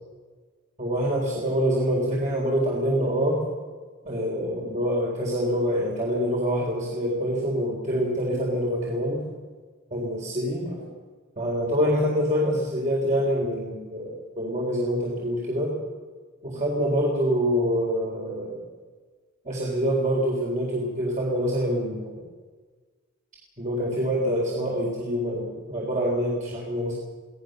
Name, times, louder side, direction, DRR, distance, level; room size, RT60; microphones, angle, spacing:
voice 1, 0.8-3.5 4.0-9.3 9.9-10.9 11.4-15.8 16.4-18.7 19.4-22.3 23.6-26.9, equal, 35° right, -3 dB, 4.2 m, -26 dB
25.0 x 18.0 x 6.8 m, 1.4 s
head